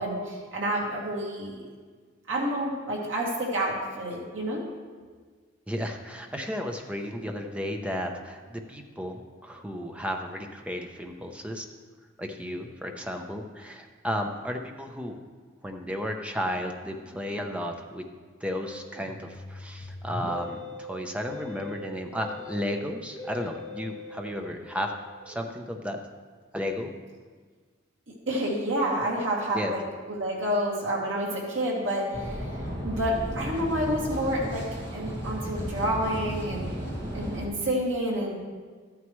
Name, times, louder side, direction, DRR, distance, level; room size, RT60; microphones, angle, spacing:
voice 1, 0.0-1.6 2.3-4.6 28.3-29.8 30.1-32.5 32.8-34.7 34.9-36.7 37.1-38.4, right 1 dB, 75° right, -3 dB, 2.5 m, -29 dB
voice 2, 5.7-11.7 12.2-15.2 15.6-18.1 18.4-24.9 25.3-26.0 26.5-26.9 29.5-29.7, equal, 5° right, 3 dB, 0.7 m, -33 dB
Musical instrument, 18.6-25.4, left 1 dB, 15° left, 1.1 m, -41 dB
sound 1, 32.1-37.5, equal, 25° right, 2.2 m, -34 dB
13.0 x 9.4 x 3.2 m, 1.5 s
head